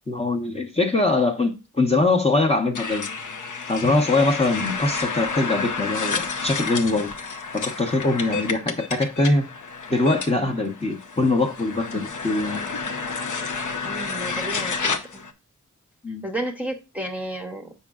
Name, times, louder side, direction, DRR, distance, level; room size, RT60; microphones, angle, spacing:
voice 1, 0.1-3.1 3.7-7.1 7.5-9.5 9.9-12.6 16.0-16.3, left 2 dB, 20° left, 0.9 m, -22 dB
sound 1, 2.8-15.3, left 4 dB, 75° left, 0.8 m, -30 dB
voice 2, 13.8-15.3 16.2-17.7, right 1 dB, 5° right, 0.9 m, -32 dB
7.3 x 5.5 x 2.4 m
wide cardioid pair, 105°, 31 cm